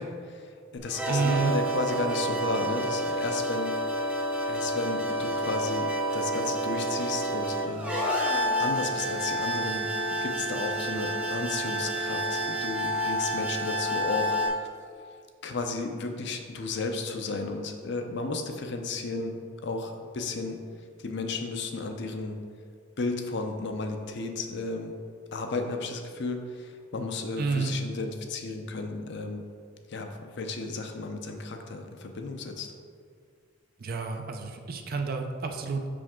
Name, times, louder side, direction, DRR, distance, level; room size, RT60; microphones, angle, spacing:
voice 1, 0.0-3.7 4.5-8.0 8.6-9.9 10.2-14.4 15.4-19.4 19.6-20.6 21.0-22.4 23.0-24.9 25.3-29.5 29.9-32.7, left 3 dB, 60° left, 5 dB, 0.6 m, -33 dB
sound 1, 0.8-14.5, equal, 5° right, 0.7 m, -29 dB
voice 2, 1.1-1.5 27.4-27.7 33.8-35.9, right 4 dB, 50° right, 4 dB, 0.5 m, -29 dB
5.7 x 5.1 x 3.6 m, 2.1 s
head